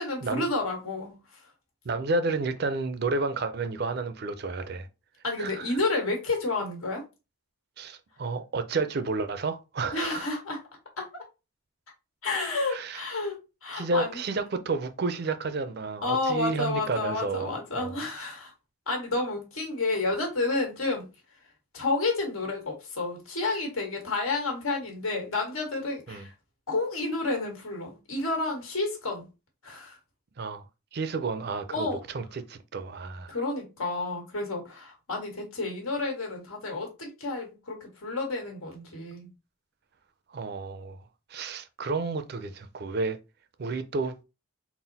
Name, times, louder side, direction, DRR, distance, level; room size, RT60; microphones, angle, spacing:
voice 1, 0.0-1.4 5.2-7.0 9.9-10.6 11.0-11.2 12.2-14.2 16.0-18.5 18.9-21.1 21.7-26.3 26.7-29.3 29.6-30.0 31.7-32.0 33.3-39.3, left 3 dB, 90° left, 1.6 m, -30 dB
voice 2, 1.8-4.9 5.4-5.7 7.8-10.3 12.7-13.0 13.7-18.0 26.1-26.3 30.4-30.6 30.9-33.3 40.3-41.0 41.3-43.2 43.6-44.1, right 3 dB, 50° right, 0.4 m, -31 dB
4.0 x 2.1 x 4.0 m
head